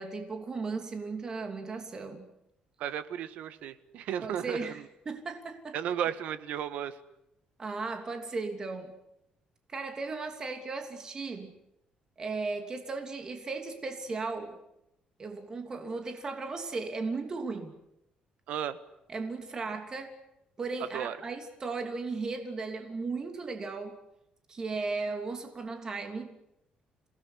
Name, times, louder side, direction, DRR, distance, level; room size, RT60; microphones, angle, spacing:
voice 1, 0.0-2.3 4.2-4.8 5.0-5.8 7.6-8.9 9.7-11.5 12.2-14.6 15.2-17.8 19.1-20.2 20.6-24.0 24.5-26.3, right 4 dB, 30° right, 5 dB, 3.1 m, -36 dB
voice 2, 2.8-4.9 5.7-7.0 18.5-18.8 20.9-21.2, right 9 dB, 80° right, 12 dB, 1.7 m, -34 dB
28.0 x 19.0 x 9.8 m, 0.82 s
cardioid pair, 150°, 2 cm